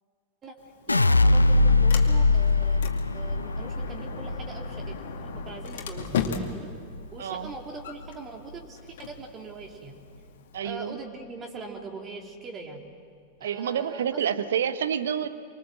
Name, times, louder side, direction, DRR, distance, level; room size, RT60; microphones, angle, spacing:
Sliding door, 0.6-10.6, left 6 dB, 55° left, 2.4 m, -38 dB
sound 1, 0.9-7.1 7.4-8.0, left 3 dB, 80° left, 0.7 m, -23 dB
voice 1, 0.9-2.8 3.1-6.7 7.1-10.0 10.6-12.8 13.4-14.2, right 3 dB, 25° right, 2 dB, 3.1 m, -42 dB
voice 2, 7.2-7.5 10.5-11.0 13.4-15.3, right 8 dB, 65° right, 13 dB, 1.2 m, -28 dB
27.0 x 24.5 x 7.6 m, 2.1 s
figure-of-eight pair, 90°, 0 cm